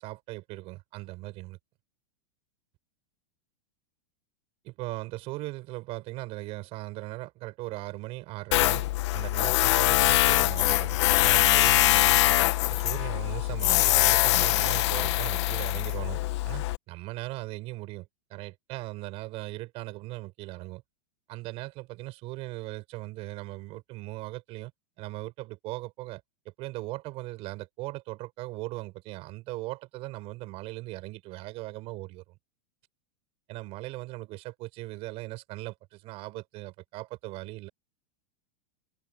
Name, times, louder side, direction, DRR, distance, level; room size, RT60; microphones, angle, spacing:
voice 1, 0.0-1.6 4.6-8.9 9.1-20.8 21.3-24.7 25.0-32.2 33.5-37.7, right 20 dB, 35° right, 6.0 m, -39 dB
Tools, 8.5-16.8, left 17 dB, 55° left, 1.6 m, -23 dB
open air
supercardioid pair, 165°, 17 cm